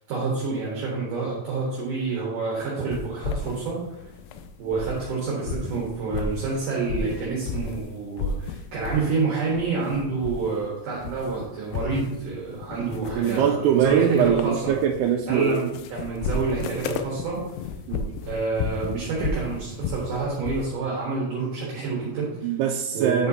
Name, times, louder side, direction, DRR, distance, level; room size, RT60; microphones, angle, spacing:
voice 1, 0.1-3.8 4.6-14.7 15.3-17.4 18.3-22.5 22.9-23.3, right 4 dB, 65° right, -4 dB, 2.7 m, -28 dB
sound 1, 2.9-5.1 5.4-7.9 8.2-9.2 9.5-10.7 10.9-20.7, left 5 dB, 90° left, 1.9 m, -33 dB
voice 2, 13.2-15.6 17.9-18.2 22.4-23.3, right 8 dB, 90° right, 1 dB, 2.6 m, -22 dB
8.6 x 7.7 x 2.7 m, 0.95 s
omnidirectional pair, 4.6 m